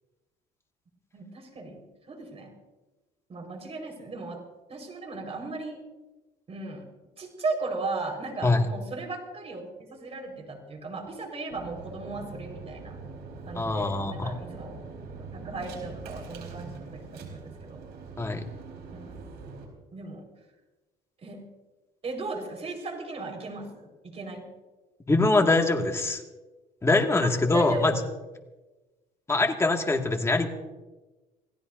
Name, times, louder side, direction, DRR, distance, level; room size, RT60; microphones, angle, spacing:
voice 1, 1.1-1.8 2.1-2.5 3.3-4.4 4.7-5.8 6.5-6.9 7.2-13.0 13.5-14.8 15.3-17.9 18.9-19.2 19.9-20.3 21.2-21.5 22.0-24.5 27.2-27.9, right 3 dB, 35° right, 3 dB, 4.8 m, -36 dB
sound 1, 11.5-19.7, right 4 dB, 75° right, 4.6 m, -43 dB
voice 2, 13.5-14.4 18.2-18.4 25.1-26.2 26.8-28.0 29.3-30.5, left 2 dB, 15° left, 2 dB, 2.1 m, -23 dB
27.5 x 17.5 x 2.7 m, 1.2 s
cardioid pair, 110°, 17 cm